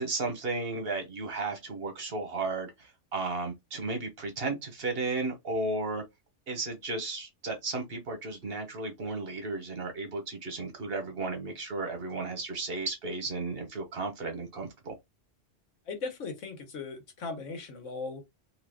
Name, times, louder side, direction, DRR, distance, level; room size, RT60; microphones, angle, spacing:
voice 1, 0.0-6.0 6.5-15.0, right 3 dB, 55° right, 1.1 m, -34 dB
voice 2, 15.9-18.2, left 4 dB, 90° left, 1.3 m, -38 dB
2.9 x 2.3 x 3.4 m
omnidirectional pair, 1.2 m